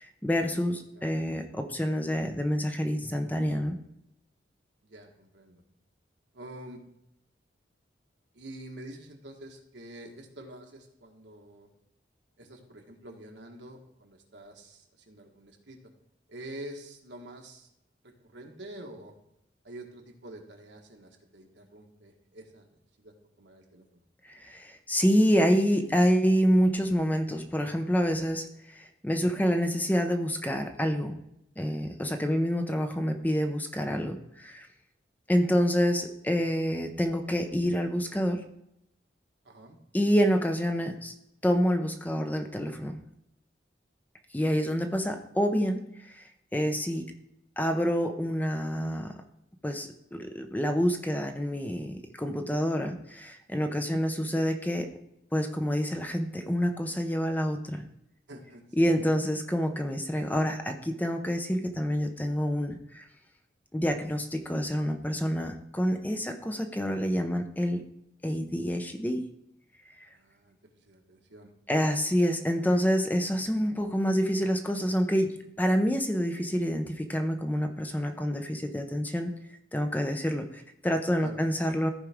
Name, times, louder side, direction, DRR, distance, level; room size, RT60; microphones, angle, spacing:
voice 1, 0.0-3.8 24.2-31.2 31.6-34.7 35.3-38.5 39.9-41.1 41.4-43.0 44.3-47.1 47.6-49.1 49.6-54.9 55.3-57.8 58.8-63.1 63.7-67.8 68.2-69.2 71.7-79.3 79.7-81.9, equal, 10° left, 6 dB, 0.6 m, -27 dB
voice 2, 4.8-5.6 6.3-6.8 8.3-11.7 12.4-15.8 16.3-17.7 18.0-19.1 19.6-22.7 23.0-23.8 39.4-39.8 44.4-44.6 53.7-54.0 58.3-58.9 70.1-70.6 70.9-71.5 81.2-81.4, right 1 dB, 75° right, 2 dB, 1.4 m, -47 dB
14.0 x 4.9 x 3.5 m, 0.79 s
head